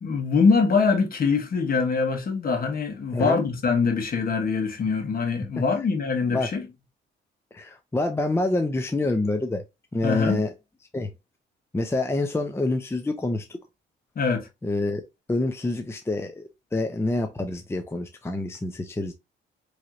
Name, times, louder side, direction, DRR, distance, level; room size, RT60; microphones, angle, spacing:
voice 1, 0.0-6.7 10.0-10.4 14.1-14.5, left 4 dB, 50° left, 1.5 m, -23 dB
voice 2, 7.5-9.6 9.9-10.5 10.9-11.1 11.7-13.6 14.6-15.0 15.3-19.1, left 2 dB, 10° left, 0.6 m, -27 dB
4.6 x 3.2 x 2.6 m
cardioid pair, 90°, 20 cm